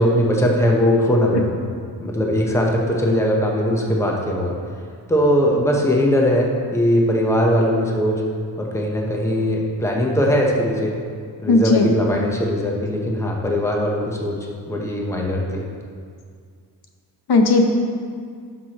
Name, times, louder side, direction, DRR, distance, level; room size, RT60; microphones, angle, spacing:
voice 1, 0.0-1.6 2.0-4.6 5.1-8.2 8.6-11.0 11.4-15.6, equal, 5° left, -1 dB, 0.8 m, -20 dB
voice 2, 11.5-11.9 17.3-17.6, left 3 dB, 75° left, 3 dB, 0.9 m, -15 dB
11.5 x 6.0 x 2.9 m, 2.1 s
wide cardioid pair, 150°, 38 cm